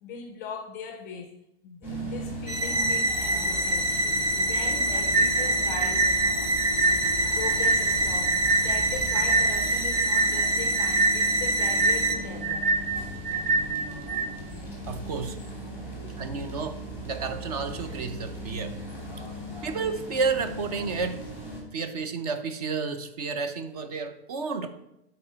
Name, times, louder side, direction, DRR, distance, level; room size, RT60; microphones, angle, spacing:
voice 1, 0.0-1.3 1.6-3.9 4.3-6.1 7.3-12.7, left 5 dB, 20° left, 0.4 m, -39 dB
sound 1, 1.8-21.6, equal, 5° right, 1.2 m, -37 dB
sound 2, 2.5-12.1, right 1 dB, 85° right, 1.2 m, -26 dB
sound 3, 5.1-14.3, right 3 dB, 60° right, 1.1 m, -26 dB
voice 2, 14.9-15.4 16.2-18.8 19.6-21.2 21.7-24.7, right 5 dB, 40° right, 0.6 m, -31 dB
8.3 x 4.1 x 5.5 m
hypercardioid pair, 165°, 31 cm